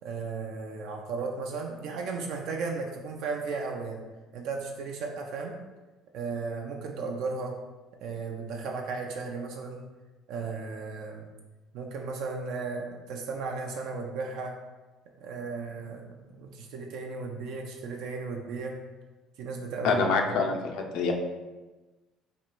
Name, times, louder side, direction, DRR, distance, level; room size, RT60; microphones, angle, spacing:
voice 1, 0.0-4.0 4.3-5.6 6.1-7.5 8.0-9.8 10.3-11.3 11.7-14.5 15.2-18.8 19.4-20.5, right 4 dB, 75° right, 1 dB, 0.4 m, -35 dB
voice 2, 19.8-21.1, left 4 dB, 80° left, 2 dB, 0.5 m, -26 dB
3.1 x 2.5 x 4.4 m, 1.2 s
cardioid pair, 120°, 0 cm